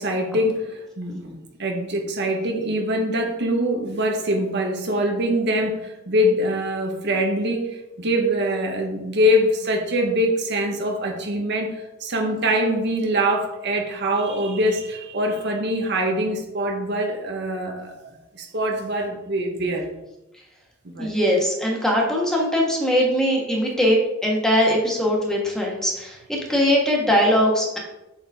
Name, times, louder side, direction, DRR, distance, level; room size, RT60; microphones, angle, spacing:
voice 1, 0.0-19.9 20.8-21.1, equal, 60° right, 2 dB, 1.1 m, -24 dB
voice 2, 21.0-27.8, equal, 5° left, -2 dB, 1.3 m, -21 dB
8.0 x 4.3 x 3.5 m, 0.94 s
head